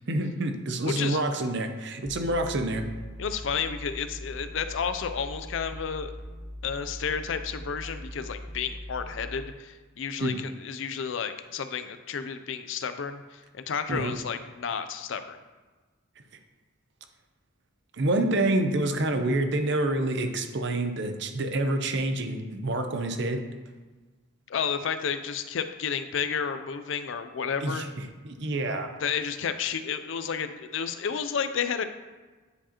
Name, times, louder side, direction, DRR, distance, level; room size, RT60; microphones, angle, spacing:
voice 1, 0.1-2.8 10.2-10.4 13.9-14.2 18.0-23.4 27.6-27.9 28.2-28.9, right 1 dB, 55° right, 6 dB, 0.6 m, -27 dB
voice 2, 0.8-1.2 3.2-6.1 6.6-15.4 24.5-27.9 29.0-31.8, left 6 dB, 65° left, 10 dB, 0.4 m, -31 dB
sound 1, 2.0-9.4, equal, ahead, 0.6 m, -41 dB
9.6 x 4.9 x 2.9 m, 1.3 s
head